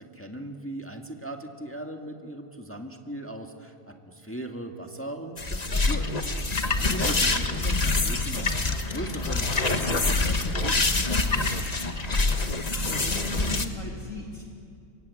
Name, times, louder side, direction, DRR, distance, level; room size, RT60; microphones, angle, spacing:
voice 1, 0.0-6.3 6.9-10.4 10.6-11.5, right 1 dB, 10° left, 3 dB, 1.7 m, -38 dB
sound 1, 5.4-13.7, left 3 dB, 25° left, 1.3 m, -25 dB
voice 2, 6.6-6.9 12.7-14.4, left 2 dB, 50° left, -1 dB, 3.5 m, -39 dB
27.5 x 23.0 x 8.5 m, 2.5 s
omnidirectional pair, 1.7 m